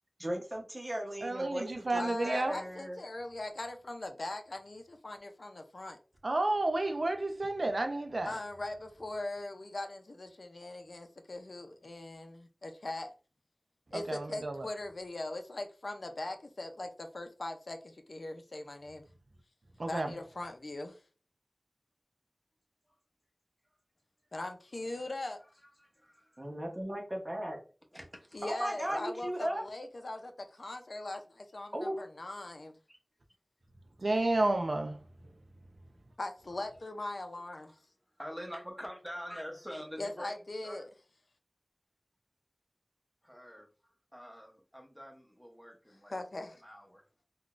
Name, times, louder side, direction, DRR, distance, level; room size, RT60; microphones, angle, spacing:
voice 1, 0.2-3.0 26.4-27.6 28.4-29.6 31.7-32.0, equal, 30° right, 0.8 m, -37 dB
voice 2, 1.2-2.6 6.2-8.4 13.9-14.7 19.8-20.2 34.0-35.0, right 2 dB, 70° right, 0.4 m, -31 dB
voice 3, 1.9-6.0 8.2-13.1 13.9-19.1 19.9-21.0 24.3-25.4 28.3-32.8 36.2-37.7 40.0-40.9 46.1-46.6, left 2 dB, 75° left, 0.4 m, -40 dB
voice 4, 25.8-26.5 27.9-28.5 28.8-29.0 32.9-33.0 38.2-40.4 40.6-40.9 43.2-43.7 44.1-46.1 46.6-47.0, equal, ahead, 0.9 m, -45 dB
3.7 x 2.2 x 2.4 m
wide cardioid pair, 45°, 0 cm